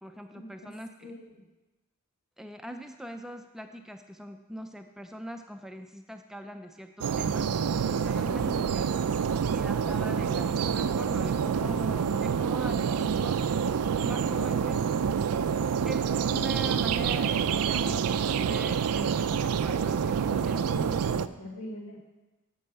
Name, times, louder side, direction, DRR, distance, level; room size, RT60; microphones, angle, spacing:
voice 1, 0.0-1.1 2.4-8.9 9.5-13.5 14.0-14.9 15.8-20.7, equal, ahead, 5 dB, 0.4 m, -41 dB
voice 2, 1.0-1.4 8.3-8.6 20.7-22.1, left 1 dB, 65° left, -1 dB, 2.2 m, -42 dB
sound 1, 7.0-21.3, right 7 dB, 80° right, 0.4 m, -27 dB
8.8 x 6.2 x 7.9 m, 1.1 s
head